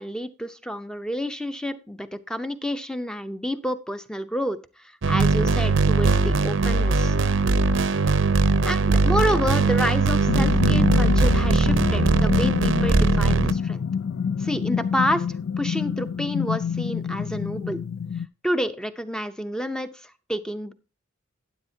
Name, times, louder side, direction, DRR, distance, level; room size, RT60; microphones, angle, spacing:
voice 1, 0.0-7.2 8.6-13.9 14.4-17.8 18.4-20.7, equal, 5° left, 11 dB, 0.6 m, -29 dB
sound 1, 5.0-13.5, right 3 dB, 70° right, 0.6 m, -20 dB
sound 2, 10.3-18.3, left 6 dB, 75° left, 0.4 m, -26 dB
12.0 x 9.7 x 2.7 m, 0.32 s
head